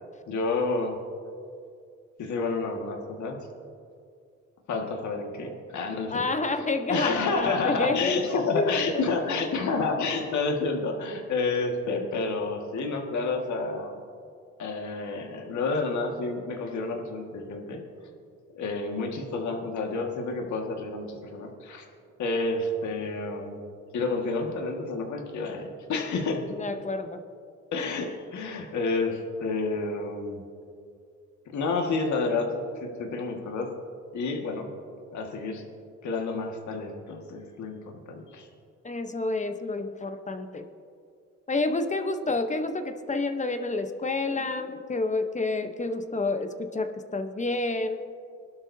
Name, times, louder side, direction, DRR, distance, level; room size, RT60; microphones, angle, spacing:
voice 1, 0.3-1.0 2.2-3.4 4.7-6.2 6.9-14.0 14.6-17.8 18.5-21.8 22.2-23.6 23.9-26.5 27.7-30.4 31.5-33.7 34.1-34.7 35.1-35.6 36.0-38.5, left 3 dB, 70° left, 2 dB, 1.8 m, -29 dB
voice 2, 6.1-9.0 26.5-27.2 38.8-40.7 41.5-48.0, left 3 dB, 25° left, 8 dB, 0.9 m, -29 dB
21.0 x 12.0 x 2.8 m, 2.3 s
cardioid pair, 90°, 30 cm